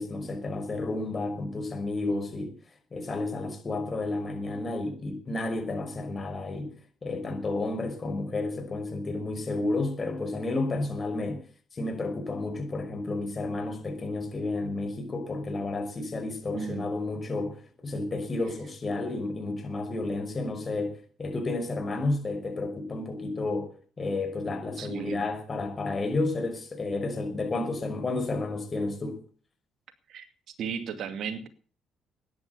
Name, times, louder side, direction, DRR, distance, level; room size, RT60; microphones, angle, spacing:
voice 1, 0.0-2.5 2.9-6.7 7.0-11.4 11.7-23.7 24.0-29.2, left 2 dB, 35° left, 5.5 m, -31 dB
voice 2, 16.5-16.9 24.8-25.3 30.1-30.3 30.6-31.5, right 7 dB, 65° right, 2.4 m, -35 dB
14.0 x 10.5 x 8.3 m
supercardioid pair, 65°, 0 cm